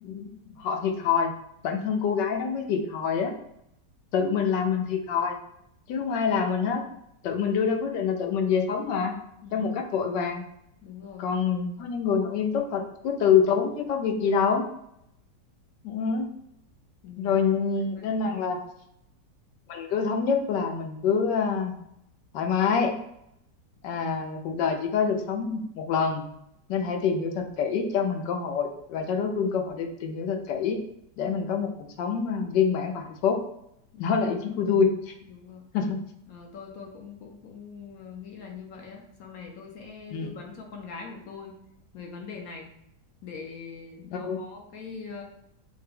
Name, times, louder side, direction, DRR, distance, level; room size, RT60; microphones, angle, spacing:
voice 1, 0.0-1.3 1.6-3.3 4.1-5.4 5.9-6.8 7.2-9.1 9.5-10.5 11.2-14.6 15.8-16.3 17.2-18.6 19.7-21.7 22.3-22.9 23.8-26.2 26.7-30.8 31.2-31.7 32.0-33.4 34.0-35.2 35.7-36.0 40.1-40.3 44.1-44.4, left 6 dB, 85° left, 4 dB, 1.3 m, -26 dB
voice 2, 10.8-11.4 17.0-17.4 17.8-18.5 33.9-34.2 35.2-35.6 36.3-41.6 41.9-42.7 43.2-45.2, left 5 dB, 65° left, 1 dB, 1.0 m, -42 dB
5.9 x 2.2 x 3.3 m, 0.77 s
omnidirectional pair, 1.9 m